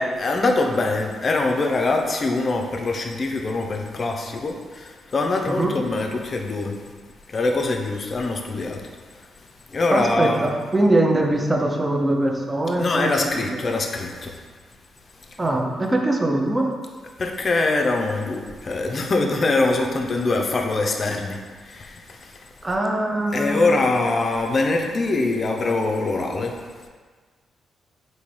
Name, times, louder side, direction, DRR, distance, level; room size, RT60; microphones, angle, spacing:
voice 1, 0.0-6.7 7.3-8.8 9.7-10.5 12.8-14.4 17.2-21.4 21.6-22.4 23.3-26.5, left 3 dB, 45° left, 2 dB, 0.4 m, -23 dB
voice 2, 9.9-13.6 15.4-16.7 22.6-24.0, right 1 dB, 25° right, 1 dB, 0.6 m, -22 dB
3.8 x 2.6 x 3.1 m, 1.5 s
hypercardioid pair, 45°, 0 cm